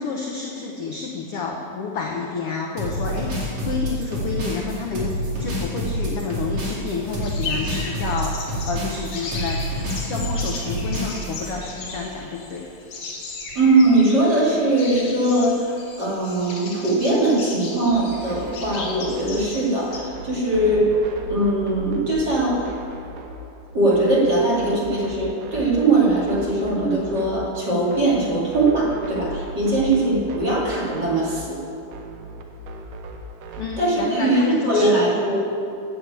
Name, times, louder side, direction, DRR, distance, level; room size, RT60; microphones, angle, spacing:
voice 1, 0.0-9.6 10.1-12.7 33.6-35.1, left 5 dB, 80° left, 0 dB, 1.3 m, -29 dB
sound 1, 2.8-11.5, right 1 dB, 60° right, 3.7 m, -27 dB
sound 2, 7.2-20.0, left 3 dB, 55° left, 2.8 m, -36 dB
voice 2, 13.5-15.7 16.0-20.9 21.3-22.7 23.7-31.6 33.8-35.5, right 2 dB, 35° right, -7 dB, 2.7 m, -20 dB
sound 3, 17.9-33.9, right 2 dB, 80° right, 2.5 m, -37 dB
9.5 x 7.3 x 8.2 m, 2.7 s
omnidirectional pair, 3.8 m